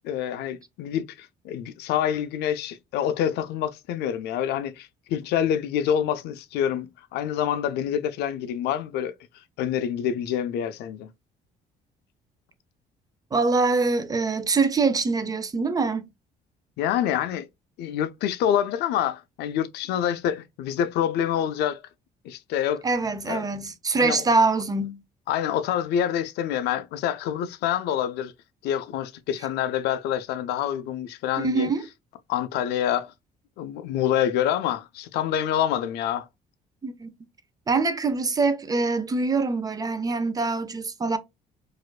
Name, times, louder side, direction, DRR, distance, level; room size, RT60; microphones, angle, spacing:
voice 1, 0.0-9.1 9.6-11.1 16.8-17.5 17.8-21.8 22.2-22.8 23.3-23.5 24.0-24.2 25.3-28.3 28.6-31.7 32.3-33.1 33.6-36.3, left 10 dB, 75° left, 0.4 m, -26 dB
voice 2, 13.3-16.1 22.8-25.0 31.4-31.8 36.8-37.1 37.7-41.2, right 3 dB, 20° right, 0.5 m, -24 dB
4.2 x 2.5 x 2.3 m
cardioid pair, 110°, 17 cm